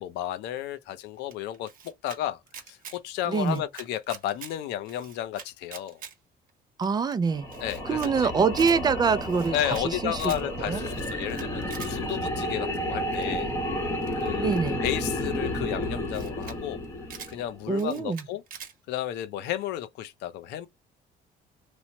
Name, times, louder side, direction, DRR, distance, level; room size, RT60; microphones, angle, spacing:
voice 1, 0.0-6.0 7.6-8.3 9.5-13.5 13.8-16.8 17.3-18.4 18.9-20.7, left 12 dB, 85° left, 0.5 m, -33 dB
Camera, 1.3-2.2 2.5-3.0 3.3-4.5 4.9-6.1 6.5-6.6 6.8-6.9 7.1-7.2 7.5-8.1 8.4-8.8 9.2-9.8 10.1-10.4 10.9-11.9 13.1-13.4 14.0-15.3 15.8-16.6 16.8-17.3 17.8-18.7, right 7 dB, 60° right, 1.0 m, -44 dB
voice 2, 3.3-3.6 6.8-7.5 7.8-10.8 14.4-14.8 17.7-18.3, right 5 dB, 25° right, 0.4 m, -25 dB
sound 1, 7.3-17.6, left 1 dB, 15° left, 0.9 m, -32 dB
3.0 x 2.0 x 2.7 m
cardioid pair, 110°, 17 cm